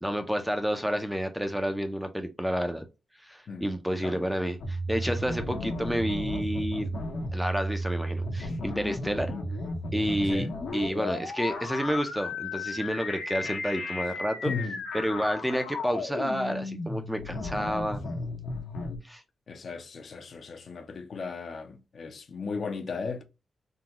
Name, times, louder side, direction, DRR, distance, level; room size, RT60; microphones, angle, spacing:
voice 1, 0.0-2.8 3.2-6.9 7.3-9.3 9.9-10.5 10.7-14.5 14.9-18.0 19.0-19.2, equal, 5° right, 0.5 m, -30 dB
sound 1, 4.6-19.0, left 1 dB, 85° left, 1.1 m, -34 dB
voice 2, 14.4-14.8 19.5-23.2, left 4 dB, 50° left, 0.6 m, -36 dB
3.7 x 2.2 x 2.8 m
wide cardioid pair, 160°, 0 cm